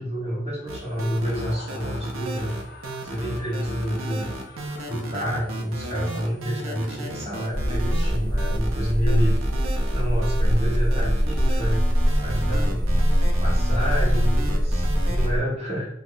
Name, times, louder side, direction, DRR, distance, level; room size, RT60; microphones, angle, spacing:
voice 1, 0.0-2.6 3.0-4.3 4.9-9.4 9.9-11.8 12.2-13.0 13.4-15.9, equal, 30° right, -6 dB, 1.2 m, -29 dB
sound 1, 0.7-15.3, right 1 dB, 80° right, 0.6 m, -33 dB
Screaming, 0.9-5.8, left 4 dB, 50° left, 0.3 m, -46 dB
sound 2, 7.5-15.4, equal, 5° right, 0.6 m, -22 dB
2.4 x 2.1 x 3.7 m, 0.74 s
head